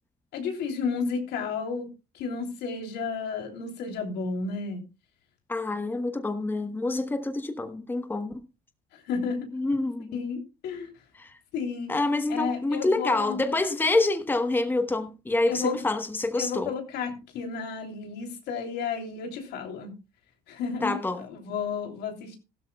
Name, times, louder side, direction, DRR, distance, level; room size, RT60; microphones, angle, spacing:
voice 1, 0.3-1.9 2.1-4.8 9.1-9.5 10.1-10.9 11.5-11.9 12.3-13.5 15.5-15.8 16.4-19.9 20.5-21.0 21.3-22.4, left 5 dB, 80° left, 3.1 m, -32 dB
voice 2, 5.5-8.4 9.5-10.2 11.1-11.3 11.9-16.7 20.8-21.3, left 2 dB, 10° left, 1.1 m, -27 dB
16.0 x 12.5 x 2.3 m
cardioid pair, 110°, 17 cm